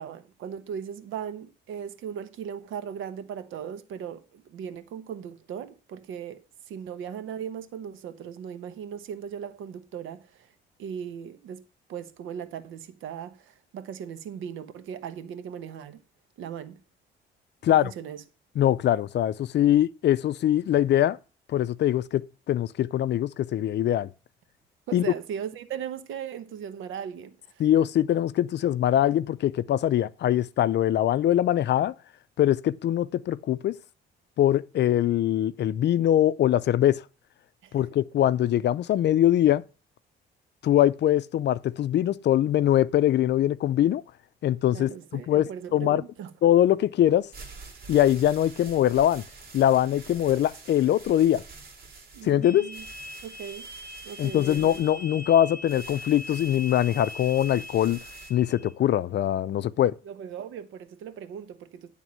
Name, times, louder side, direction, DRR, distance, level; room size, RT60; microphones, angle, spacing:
voice 1, 0.0-10.5 10.8-11.6 11.9-16.0 16.4-16.8 17.6-18.2 24.9-27.6 37.6-37.9 44.7-46.3 52.1-52.8 53.2-53.7 54.0-54.7 60.0-61.9, right 8 dB, 85° right, 1.0 m, -38 dB
voice 2, 18.6-21.2 21.5-24.1 24.9-25.1 27.6-31.9 32.4-33.8 34.4-37.0 37.7-39.6 40.6-44.0 44.4-46.0 46.4-47.3 47.9-49.2 49.5-51.4 52.2-52.7 54.2-58.0 58.3-59.9, left 11 dB, 60° left, 0.5 m, -22 dB
sound 1, 47.2-58.3, right 4 dB, 50° right, 2.4 m, -47 dB
sound 2, 52.4-58.7, left 1 dB, 45° left, 0.9 m, -41 dB
10.5 x 3.7 x 7.4 m
cardioid pair, 90°, 20 cm